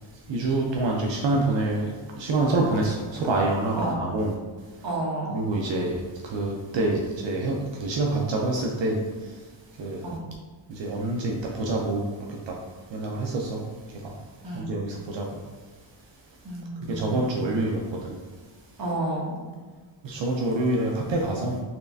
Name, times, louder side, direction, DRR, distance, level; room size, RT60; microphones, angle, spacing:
voice 1, 0.3-1.9 2.2-4.3 5.3-6.0 6.2-9.0 9.8-10.1 10.7-12.6 12.9-13.6 14.0-14.1 14.5-15.3 16.9-18.2 20.0-21.6, right 2 dB, 65° right, -1 dB, 0.6 m, -26 dB
voice 2, 3.7-4.1 4.8-5.4 10.0-10.2 14.4-14.7 16.4-17.5 18.8-19.4, right 1 dB, 45° right, -5 dB, 1.3 m, -31 dB
4.3 x 3.2 x 2.6 m, 1.4 s
wide cardioid pair, 125°, 48 cm